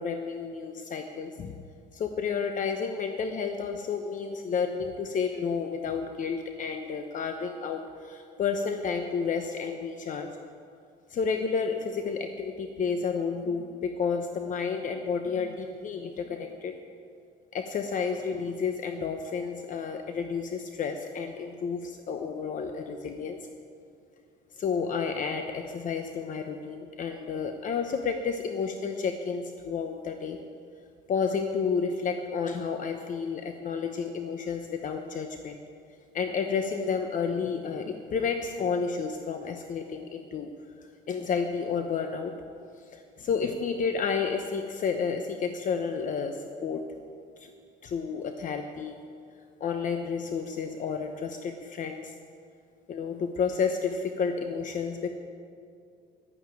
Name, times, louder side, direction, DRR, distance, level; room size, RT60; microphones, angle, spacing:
voice 1, 0.0-1.5 1.9-10.3 11.1-16.7 17.5-23.4 24.6-30.4 31.1-35.6 36.1-40.5 41.1-42.3 42.9-46.8 47.4-47.5 47.8-49.0 49.6-52.1 52.9-55.1, left 5 dB, 50° left, 5 dB, 1.0 m, -31 dB
12.0 x 9.3 x 9.0 m, 2.3 s
cardioid pair, 110°, 17 cm